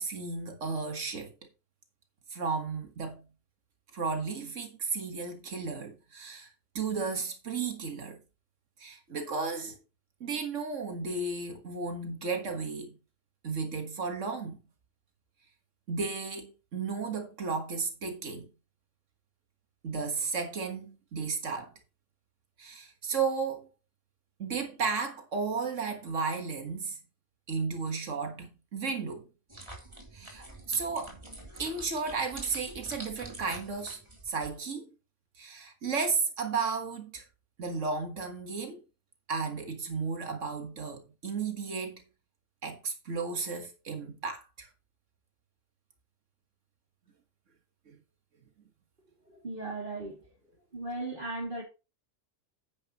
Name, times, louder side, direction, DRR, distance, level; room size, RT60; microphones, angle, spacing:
voice 1, 0.0-1.3 2.3-3.2 3.9-8.2 8.8-9.8 10.2-12.9 13.4-14.6 15.9-18.5 19.8-21.7 22.6-23.7 24.4-27.0 27.5-29.3 30.1-31.2 31.6-34.0 34.3-34.9 35.4-37.3 37.6-38.8 39.3-42.0 42.6-44.7 47.9-48.0, right 4 dB, 90° right, 1.9 m, -34 dB
sound 1, 29.5-34.6, right 1 dB, 25° right, 3.2 m, -47 dB
voice 2, 49.3-50.2 50.7-51.6, right 2 dB, 45° right, 2.5 m, -37 dB
9.7 x 9.7 x 3.0 m
omnidirectional pair, 1.2 m